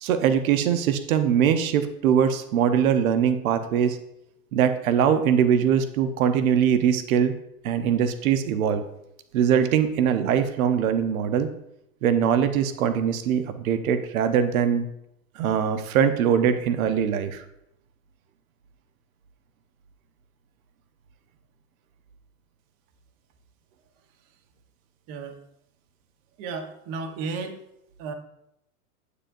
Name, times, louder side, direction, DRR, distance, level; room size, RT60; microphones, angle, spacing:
voice 1, 0.0-4.0 4.5-7.3 7.6-8.8 9.3-11.5 12.0-14.9 15.4-17.4, right 8 dB, 65° right, 9 dB, 1.0 m, -22 dB
voice 2, 25.1-25.4 26.4-27.6 28.0-28.1, right 4 dB, 40° right, 5 dB, 1.1 m, -33 dB
9.7 x 7.6 x 2.6 m, 0.79 s
hypercardioid pair, 130°, 46 cm